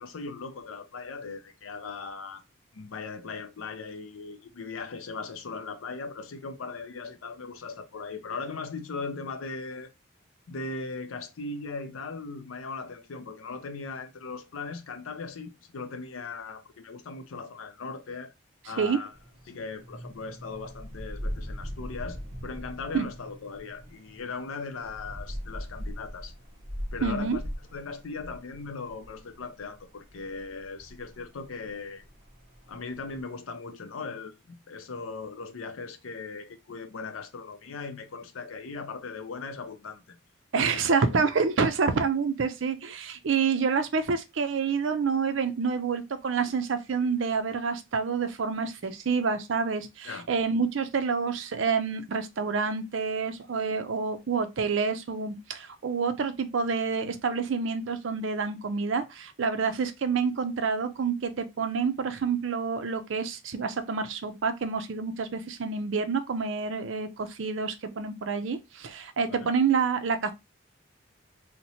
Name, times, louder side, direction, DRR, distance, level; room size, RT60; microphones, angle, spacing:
voice 1, 0.0-2.4 2.7-9.9 10.5-18.3 18.6-19.1 19.5-26.3 26.9-27.4 27.7-32.0 32.7-40.2 40.6-41.2 50.1-50.3 69.3-69.5, left 4 dB, 90° left, 0.5 m, -39 dB
sound 1, 19.1-33.2, equal, 30° right, 0.8 m, -41 dB
voice 2, 27.0-27.4 40.5-70.3, right 5 dB, 70° right, 0.5 m, -28 dB
2.8 x 2.1 x 4.0 m
head